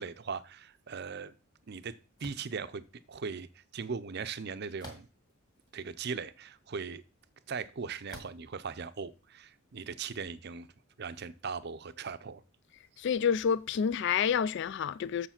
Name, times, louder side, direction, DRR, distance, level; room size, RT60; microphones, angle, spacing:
voice 1, 0.0-1.3 1.7-1.9 2.2-5.1 5.7-7.0 7.5-10.7 11.0-12.4, right 5 dB, 50° right, 0.5 m, -39 dB
sound 1, 2.2-2.5 4.8-5.3 6.1-6.2 8.1-8.5, left 1 dB, 20° left, 1.9 m, -48 dB
voice 2, 13.0-15.3, left 7 dB, 55° left, 0.3 m, -28 dB
7.1 x 6.5 x 5.8 m
head